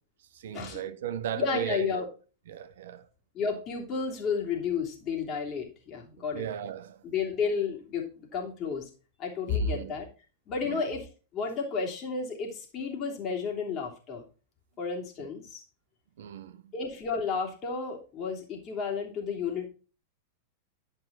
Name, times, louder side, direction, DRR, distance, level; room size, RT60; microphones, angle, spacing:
voice 1, 0.3-2.0 2.5-3.1 6.3-7.0 9.5-9.9 10.6-10.8 16.2-16.7, right 9 dB, 60° right, 0.7 m, -37 dB
voice 2, 1.3-2.1 3.3-6.4 7.0-8.9 9.2-10.1 10.5-11.1 11.3-14.2 14.8-15.6 16.7-19.7, left 5 dB, 35° left, 3.1 m, -32 dB
11.0 x 5.5 x 4.3 m
figure-of-eight pair, 90°, 0 cm